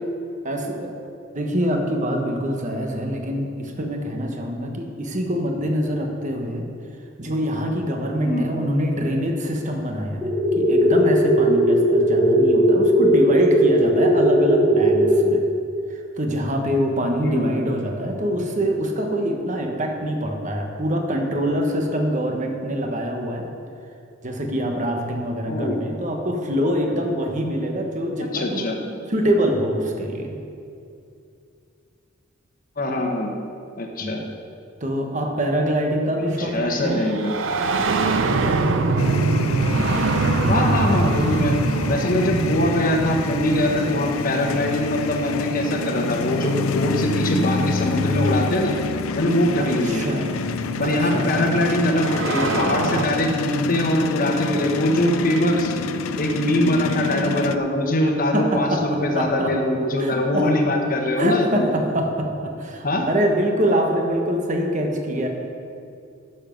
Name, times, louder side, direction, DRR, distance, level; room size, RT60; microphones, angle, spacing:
voice 1, 0.4-0.9 1.3-6.6 7.2-15.4 15.9-23.5 24.2-28.7 29.1-30.4 34.0-34.1 34.8-37.1 49.6-50.5 50.8-51.5 58.3-58.8 59.1-59.5 60.0-60.5 61.2-65.3, equal, 35° right, 2 dB, 1.2 m, -24 dB
sound 1, 10.2-15.2, equal, 5° right, 1.6 m, -17 dB
voice 2, 25.5-25.8 28.3-28.8 32.8-33.3 33.8-34.2 36.4-37.3 40.5-41.5 41.9-48.7 49.2-50.1 50.8-55.7 56.2-61.7 62.8-63.1, left 1 dB, 45° left, 2 dB, 1.2 m, -22 dB
sound 2, 36.3-46.9 48.2-48.3 49.3-53.1, right 3 dB, 65° right, 0.6 m, -25 dB
sound 3, 39.0-57.6, left 4 dB, 85° left, 0.4 m, -28 dB
11.5 x 7.1 x 5.2 m, 2.5 s
head